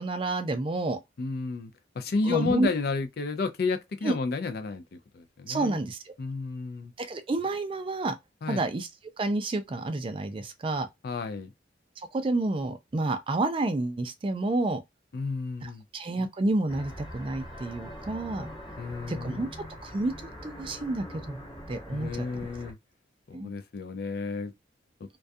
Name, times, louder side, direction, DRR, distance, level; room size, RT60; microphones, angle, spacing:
voice 1, 0.0-1.0 2.2-2.7 4.0-4.1 5.5-6.1 7.0-8.1 8.5-8.9 9.2-10.9 12.0-14.8 15.6-18.5 19.1-19.5 19.8-22.3 23.3-23.5, right 2 dB, 30° right, 0.3 m, -29 dB
voice 2, 1.2-5.8 6.2-6.9 8.4-8.7 11.0-11.5 15.1-15.8 18.8-19.5 21.9-22.8 23.3-24.5, left 4 dB, 60° left, 0.4 m, -32 dB
sound 1, 16.7-22.7, equal, 30° left, 0.8 m, -43 dB
2.3 x 2.2 x 2.5 m
head